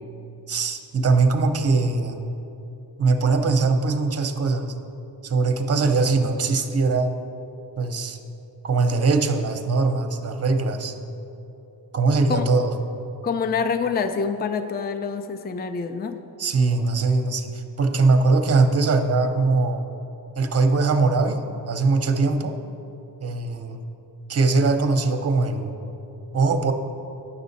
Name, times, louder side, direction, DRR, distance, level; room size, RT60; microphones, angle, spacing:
voice 1, 0.5-2.2 3.0-4.7 5.2-7.2 7.8-8.2 8.6-11.0 11.9-12.7 16.4-19.9 20.4-22.6 23.2-23.8 24.3-25.7 26.3-26.7, right 3 dB, 40° right, 7 dB, 0.6 m, -21 dB
voice 2, 13.2-16.2, left 5 dB, 25° left, 8 dB, 0.4 m, -26 dB
9.8 x 6.2 x 4.1 m, 2.9 s
cardioid pair, 75°, 39 cm